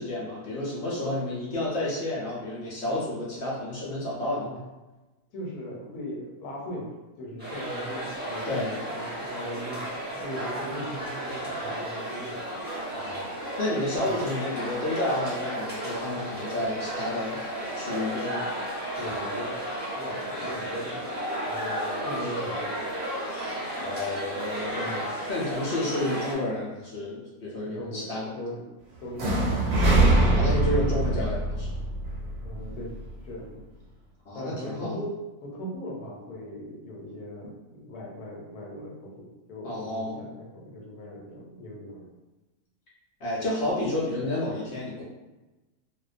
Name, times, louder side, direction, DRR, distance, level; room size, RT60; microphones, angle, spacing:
voice 1, 0.0-4.5 8.4-8.7 12.9-13.3 13.6-17.4 17.7-18.1 23.8-25.0 25.3-28.3 30.3-31.7 34.3-35.0 39.6-40.2 43.2-45.0, left 1 dB, 60° left, -6 dB, 0.7 m, -30 dB
voice 2, 5.3-12.7 14.0-14.3 18.1-18.4 19.0-19.5 19.9-21.2 21.4-22.8 24.7-25.1 27.6-28.6 29.0-29.7 32.4-32.9 33.2-33.5 34.3-35.1 35.4-42.1, equal, 80° left, -2 dB, 1.2 m, -39 dB
sound 1, 7.4-26.3, right 1 dB, 15° right, 0.4 m, -33 dB
sound 2, 29.2-33.1, right 2 dB, 65° right, 0.8 m, -23 dB
2.5 x 2.1 x 2.4 m, 1.1 s
omnidirectional pair, 1.6 m